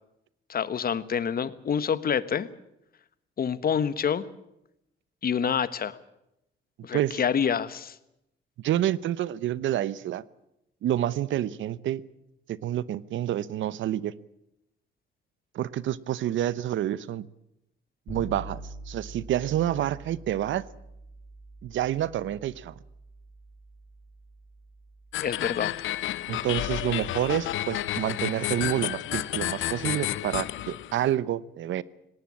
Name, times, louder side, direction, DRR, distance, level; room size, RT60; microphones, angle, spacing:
voice 1, 0.5-2.5 3.4-4.3 5.2-6.0 6.8-7.9 25.2-25.7, left 7 dB, 50° left, 15 dB, 1.3 m, -27 dB
voice 2, 8.6-10.2 10.8-12.0 12.5-14.1 15.5-17.3 18.1-20.6 21.6-22.7 26.3-31.8, right 12 dB, 75° right, 19 dB, 0.9 m, -28 dB
Bass guitar, 18.1-27.7, right 1 dB, 30° left, 6.6 m, -47 dB
sound 1, 25.1-31.1, left 14 dB, 80° left, 0.8 m, -31 dB
18.5 x 18.5 x 8.7 m, 0.84 s
cardioid pair, 90°, 20 cm